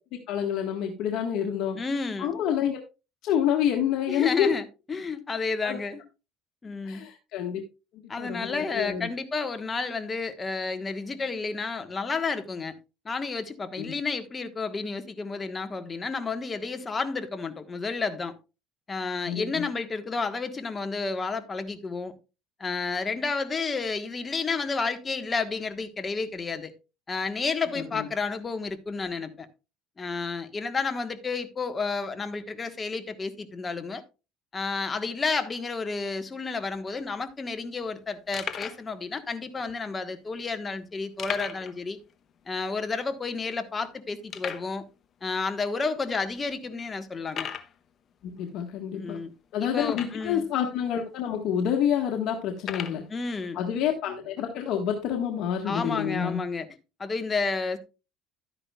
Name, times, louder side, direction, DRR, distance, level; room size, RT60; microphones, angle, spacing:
voice 1, 0.3-1.8 2.2-2.8 3.2-4.5 5.6-5.8 6.8-7.6 8.2-9.1 13.8-13.9 19.2-19.6 27.8-28.1 48.2-49.2 49.5-53.0 53.5-56.4, left 9 dB, 65° left, 1.6 m, -28 dB
voice 2, 1.7-2.4 4.1-4.6 4.9-6.0 6.6-7.0 8.1-12.7 13.0-18.3 18.9-22.1 22.6-26.7 27.1-29.5 30.0-34.0 34.5-42.0 42.5-44.8 45.2-47.5 48.9-49.3 49.6-50.4 53.1-53.6 55.6-56.7 57.0-57.8, left 4 dB, 25° left, 1.3 m, -31 dB
sound 1, 36.9-37.0 37.1-37.3 37.8-37.9 38.3-38.9 39.6-39.7 41.2-41.8 42.1-42.2 42.6-42.7 43.3-43.4 44.3-44.7 45.5-45.6 46.2-46.3 47.3-47.7 49.8-50.4 51.2-51.3 52.6-53.0, left 8 dB, 40° left, 1.0 m, -36 dB
12.0 x 9.8 x 2.4 m
cardioid pair, 115°, 0 cm